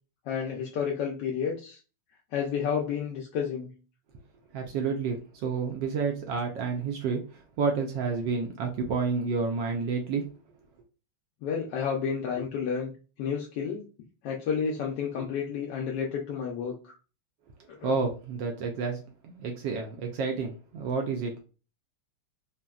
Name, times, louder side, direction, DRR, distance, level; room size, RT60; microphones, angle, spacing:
voice 1, 0.3-1.8 2.3-3.7 11.4-12.9 13.2-13.8 14.2-17.0 17.8-17.9, left 7 dB, 75° left, -1 dB, 1.0 m, -31 dB
voice 2, 4.5-10.2 17.8-21.3, right 5 dB, 75° right, 3 dB, 1.0 m, -30 dB
3.9 x 2.1 x 2.3 m, 0.34 s
omnidirectional pair, 2.4 m